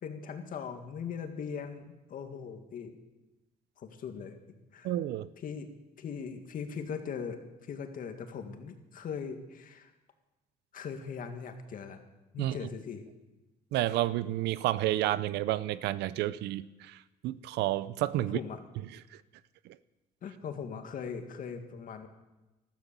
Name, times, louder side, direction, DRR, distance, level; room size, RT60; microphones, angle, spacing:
voice 1, 0.0-3.0 3.8-4.4 4.7-4.9 5.4-5.7 6.0-9.9 10.7-12.0 12.3-13.1 18.3-18.6 20.2-22.1, left 6 dB, 55° left, 2.0 m, -40 dB
voice 2, 4.8-5.3 12.4-12.6 13.7-18.4 19.1-19.2 19.7-19.8, right 14 dB, 80° right, 0.6 m, -30 dB
13.5 x 13.0 x 6.9 m
cardioid pair, 110°, 17 cm